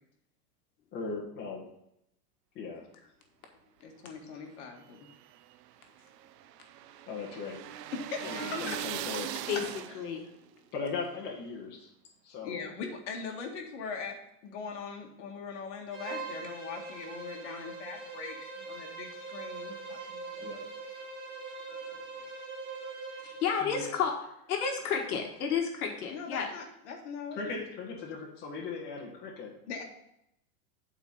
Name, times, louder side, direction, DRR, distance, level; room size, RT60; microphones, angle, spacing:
voice 1, 0.9-1.6 2.5-2.8 7.1-7.6 8.2-9.3 10.7-11.9 12.2-12.7 20.4-20.6 23.6-23.9 27.3-29.5, left 4 dB, 20° left, -3 dB, 1.6 m, -38 dB
voice 2, 3.8-5.0 7.9-8.8 12.4-20.7 26.1-27.6 29.7-29.8, left 5 dB, 45° left, 1 dB, 1.9 m, -41 dB
sound 1, 4.8-10.3, right 11 dB, 90° right, 0.7 m, -40 dB
voice 3, 9.9-10.3 23.4-24.1 24.5-26.5, left 6 dB, 65° left, 2 dB, 1.6 m, -31 dB
Bowed string instrument, 15.9-23.6, right 4 dB, 30° right, 2.3 m, -42 dB
9.3 x 4.6 x 5.4 m, 0.79 s
supercardioid pair, 170°, 47 cm